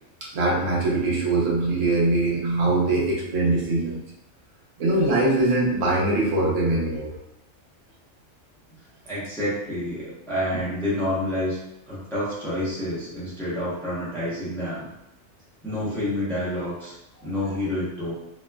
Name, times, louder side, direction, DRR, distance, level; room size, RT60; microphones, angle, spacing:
voice 1, 0.2-4.0 4.8-7.1, right 2 dB, 90° right, -4 dB, 1.1 m, -22 dB
voice 2, 9.0-11.6 11.9-14.9 15.6-16.9 17.2-18.1, left 1 dB, ahead, -9 dB, 0.6 m, -28 dB
2.9 x 2.2 x 2.2 m, 0.88 s
omnidirectional pair, 1.3 m